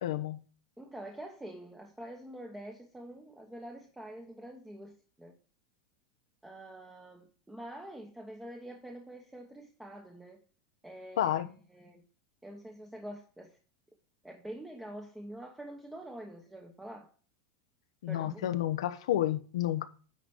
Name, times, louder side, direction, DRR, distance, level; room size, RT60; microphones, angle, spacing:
voice 1, 0.0-0.4 11.2-11.5 18.0-19.9, left 12 dB, 90° left, 0.9 m, -30 dB
voice 2, 0.8-5.3 6.4-10.4 10.8-12.0 12.4-13.6 14.2-17.1 18.1-18.7, right 1 dB, 5° right, 1.1 m, -46 dB
9.9 x 4.2 x 6.3 m
supercardioid pair, 155°, 3 cm